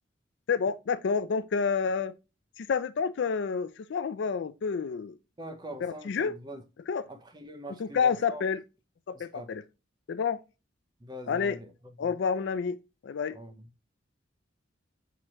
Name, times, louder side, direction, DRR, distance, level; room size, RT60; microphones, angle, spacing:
voice 1, 0.5-2.1 2.6-5.2 5.8-6.3 6.9-7.1 7.8-8.6 9.1-9.6 10.1-10.4 11.3-11.6 12.0-12.8 13.0-13.4, left 6 dB, 65° left, 0.4 m, -29 dB
voice 2, 5.4-6.6 7.1-8.4 9.1-9.5 11.0-11.7 12.0-12.1 13.3-13.7, right 1 dB, 20° right, 0.7 m, -43 dB
5.8 x 2.9 x 3.1 m
head